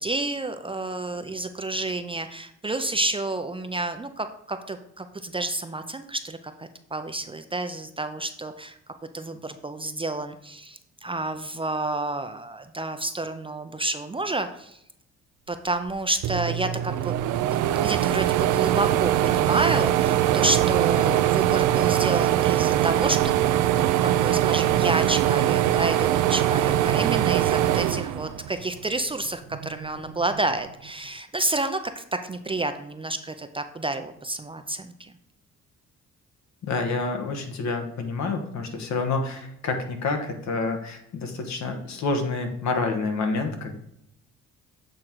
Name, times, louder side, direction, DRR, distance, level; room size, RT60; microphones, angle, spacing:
voice 1, 0.0-8.8 9.1-14.8 15.5-23.3 24.2-35.1, right 2 dB, 20° right, 8 dB, 0.4 m, -30 dB
sound 1, 15.9-16.0 16.2-28.8 29.3-30.4, right 12 dB, 80° right, 0.5 m, -22 dB
voice 2, 36.6-43.7, left 3 dB, 65° left, 5 dB, 1.2 m, -28 dB
7.8 x 3.6 x 4.5 m, 0.77 s
cardioid pair, 90°, 30 cm